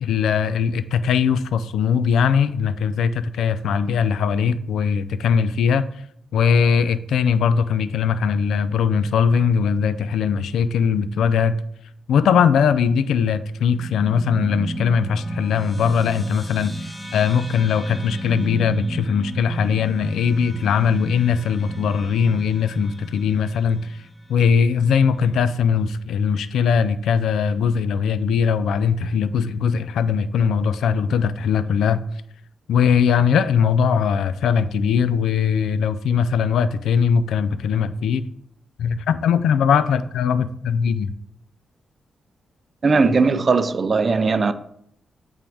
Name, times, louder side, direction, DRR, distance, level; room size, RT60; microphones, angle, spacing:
voice 1, 0.0-5.9 6.3-11.6 12.1-24.0 24.3-32.0 32.7-38.2 38.8-41.1, left 6 dB, 90° left, 0.3 m, -20 dB
sound 1, 13.7-24.5, right 1 dB, 10° left, 0.8 m, -34 dB
voice 2, 42.8-44.5, right 4 dB, 40° right, 0.4 m, -18 dB
8.4 x 3.6 x 3.4 m
cardioid pair, 90°, 0 cm